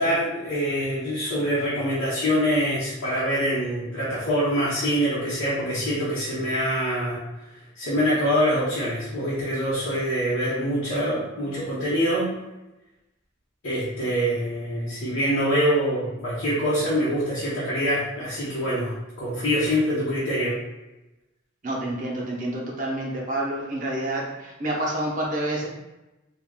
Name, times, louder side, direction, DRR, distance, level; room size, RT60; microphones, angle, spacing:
voice 1, 0.0-7.2 7.8-12.3 13.6-20.6, equal, 70° left, -9 dB, 0.8 m, -25 dB
voice 2, 21.6-25.7, right 1 dB, 40° right, -2 dB, 0.6 m, -28 dB
3.5 x 2.2 x 2.2 m, 1.0 s
head